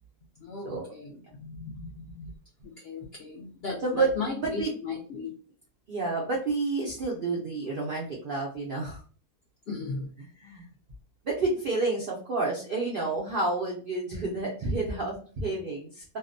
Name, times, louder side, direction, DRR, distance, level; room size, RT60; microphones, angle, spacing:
voice 1, 0.4-2.3 2.6-5.3 9.7-10.1, left 4 dB, 70° left, -2 dB, 0.5 m, -37 dB
voice 2, 3.8-4.1 4.4-4.7 5.9-9.0 10.2-10.7 11.2-16.0, right 3 dB, 70° right, -2 dB, 0.5 m, -29 dB
2.6 x 2.1 x 2.5 m, 0.42 s
omnidirectional pair, 1.6 m